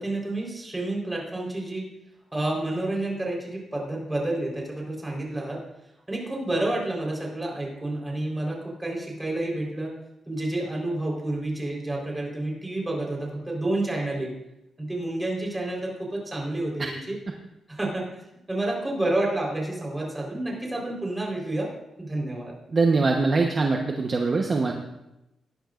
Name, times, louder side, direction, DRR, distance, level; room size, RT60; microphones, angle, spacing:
voice 1, 0.0-1.9 2.3-5.6 6.1-9.9 10.3-14.3 14.8-17.2 17.7-18.2 18.5-21.7 22.0-22.5, right 2 dB, 15° right, -1 dB, 4.2 m, -29 dB
voice 2, 22.7-24.7, right 3 dB, 40° right, 2 dB, 1.1 m, -22 dB
18.0 x 11.5 x 2.6 m, 0.90 s
cardioid pair, 90°, 0 cm